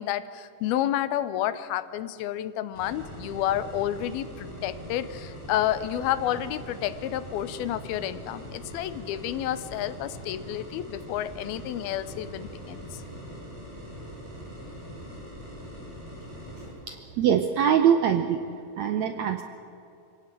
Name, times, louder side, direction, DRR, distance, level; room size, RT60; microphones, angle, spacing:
voice 1, 0.0-13.0, left 12 dB, 90° left, 14 dB, 2.8 m, -30 dB
sound 1, 2.7-16.7, equal, 15° right, 7.3 m, -42 dB
voice 2, 16.9-18.4 18.8-19.4, right 8 dB, 75° right, 6 dB, 1.7 m, -23 dB
25.0 x 17.0 x 9.1 m, 2.6 s
omnidirectional pair, 4.2 m